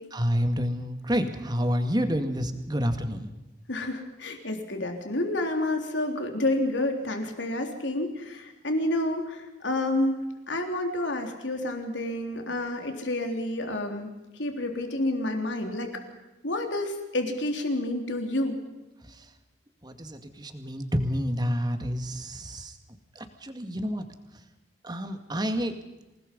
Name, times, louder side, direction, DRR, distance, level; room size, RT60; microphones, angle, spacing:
voice 1, 0.1-3.3 19.1-19.3 19.8-22.8 23.2-24.0 24.8-25.7, equal, 25° right, 7 dB, 2.1 m, -29 dB
voice 2, 3.7-14.1 14.4-15.9 16.4-18.6, left 1 dB, 85° left, 4 dB, 3.6 m, -29 dB
27.5 x 19.0 x 5.4 m, 1.0 s
head